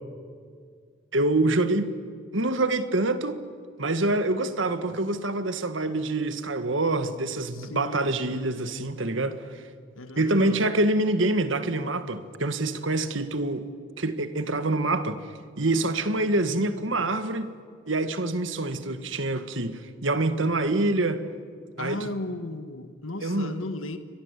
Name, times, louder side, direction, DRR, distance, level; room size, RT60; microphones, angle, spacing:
voice 1, 1.1-1.9 2.3-3.4 3.8-9.4 10.2-13.7 14.0-15.2 15.6-17.5 17.9-21.2 21.8-22.1 23.2-23.5, right 2 dB, 70° right, 1.7 m, -26 dB
voice 2, 7.5-8.4 10.0-10.6 21.8-24.0, left 2 dB, 80° left, 1.6 m, -36 dB
29.5 x 23.5 x 8.4 m
head